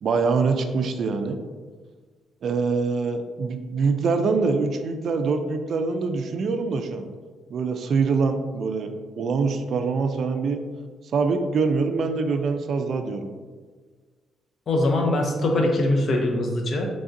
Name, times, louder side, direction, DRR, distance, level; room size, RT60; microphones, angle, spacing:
voice 1, 0.0-1.4 2.4-7.1 7.5-10.6 11.1-13.3, right 4 dB, 60° right, 7 dB, 0.3 m, -24 dB
voice 2, 14.7-16.9, left 1 dB, 50° left, 2 dB, 0.6 m, -22 dB
3.7 x 3.3 x 2.6 m, 1.5 s
cardioid pair, 90°, 0 cm